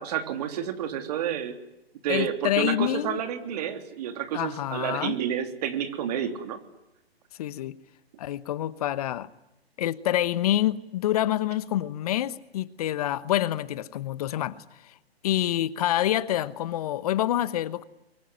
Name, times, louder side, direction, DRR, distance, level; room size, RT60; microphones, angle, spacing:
voice 1, 0.0-1.5 2.0-6.6, right 9 dB, 40° right, 3.3 m, -30 dB
voice 2, 2.1-3.2 4.3-5.2 7.4-7.8 8.2-9.3 9.8-14.9 15.2-17.8, left 12 dB, 35° left, 1.1 m, -27 dB
24.0 x 23.5 x 9.7 m
figure-of-eight pair, 135°, 31 cm